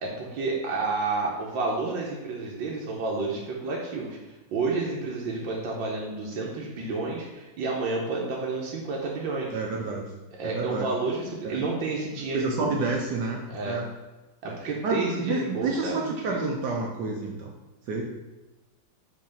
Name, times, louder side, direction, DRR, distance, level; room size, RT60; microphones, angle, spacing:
voice 1, 0.0-9.6 10.4-12.8 13.5-13.8 14.4-16.4, right 3 dB, 90° right, -2 dB, 1.6 m, -30 dB
voice 2, 9.5-10.1 10.4-10.9 11.4-11.6 12.3-13.4 13.6-13.9 14.4-17.5 17.9-18.0, right 3 dB, 70° right, 0 dB, 1.3 m, -29 dB
5.5 x 3.9 x 5.2 m, 1.1 s
omnidirectional pair, 2.0 m